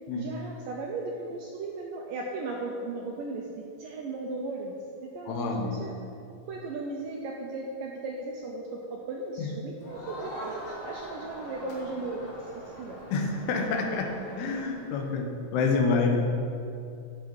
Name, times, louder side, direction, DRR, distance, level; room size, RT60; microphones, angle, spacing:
voice 1, 0.2-5.9 6.5-12.3 12.8-13.0, right 3 dB, 80° right, -1 dB, 2.0 m, -36 dB
voice 2, 5.3-5.8 9.4-9.5 13.1-14.1 14.4-16.2, left 4 dB, 80° left, 3 dB, 2.9 m, -27 dB
Crowd, 9.8-15.1, right 1 dB, 50° left, 2.0 m, -42 dB
11.0 x 7.2 x 4.5 m, 2.6 s
omnidirectional pair, 4.7 m